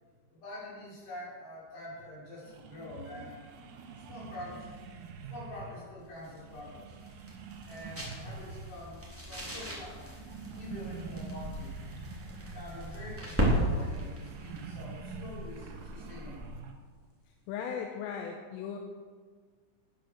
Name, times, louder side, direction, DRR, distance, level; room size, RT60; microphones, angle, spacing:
voice 1, 0.3-3.4 4.0-4.8 5.3-7.0 7.6-9.0 9.3-10.0 10.5-11.8 12.5-16.5, left 1 dB, 55° left, -6 dB, 7.5 m, -45 dB
sound 1, 2.0-2.1 2.4-5.9 6.3-8.9 9.2-16.7, right 5 dB, 80° right, 4.1 m, -46 dB
sound 2, 6.0-16.6, equal, 5° right, 2.2 m, -37 dB
voice 2, 17.5-18.8, left 7 dB, 80° left, 2 dB, 3.5 m, -37 dB
14.0 x 10.0 x 6.7 m, 1.5 s
omnidirectional pair, 6.0 m